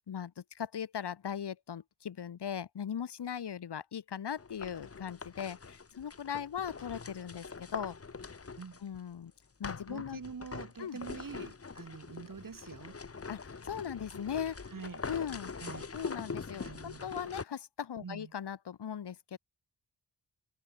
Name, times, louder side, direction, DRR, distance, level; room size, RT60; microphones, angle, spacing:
voice 1, 0.1-8.0 8.8-9.3 9.6-10.2 10.8-11.0 13.3-14.6 15.1-15.5 15.9-19.4, left 8 dB, 75° left, 1.1 m, -39 dB
sound 1, 4.4-9.0 9.6-17.4, left 4 dB, 35° left, 1.1 m, -43 dB
voice 2, 9.9-13.0 14.7-15.1 15.6-15.9 16.6-17.3 18.0-18.3, right 5 dB, 55° right, 1.7 m, -45 dB
wide cardioid pair, 70°, 40 cm